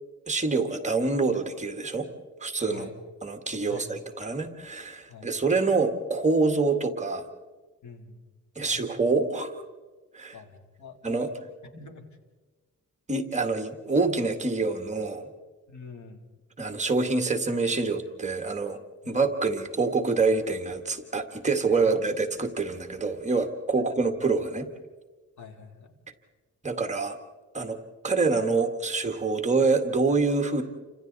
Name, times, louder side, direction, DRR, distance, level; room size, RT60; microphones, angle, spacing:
voice 1, 0.3-2.1 2.4-2.9 3.2-7.2 8.6-9.5 10.1-10.4 11.0-11.3 13.1-15.3 16.6-18.8 19.1-24.7 26.6-27.2 27.5-27.8 28.0-30.6, right 3 dB, 25° right, 6 dB, 1.7 m, -26 dB
voice 2, 3.7-4.0 5.1-5.3 7.8-8.2 8.6-9.1 10.3-11.3 11.6-12.1 15.7-16.2 19.0-19.2 21.8-22.3 25.4-26.0, left 4 dB, 70° left, 4 dB, 3.1 m, -46 dB
29.5 x 26.5 x 4.1 m, 1.3 s
wide cardioid pair, 145°, 31 cm